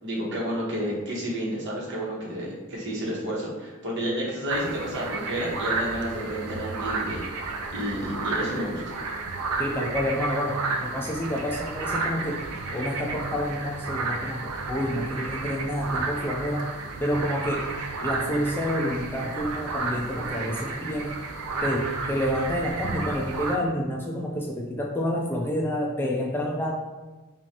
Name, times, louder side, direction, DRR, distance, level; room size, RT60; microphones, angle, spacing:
voice 1, 0.0-7.2 7.7-8.8, equal, 55° right, -4 dB, 1.1 m, -30 dB
sound 1, 4.5-23.6, right 3 dB, 85° right, 0.5 m, -32 dB
voice 2, 9.6-12.4 12.7-16.6 17.0-17.7 18.0-21.2 21.6-26.7, equal, 10° left, -1 dB, 0.3 m, -28 dB
4.8 x 2.4 x 2.8 m, 1.2 s
head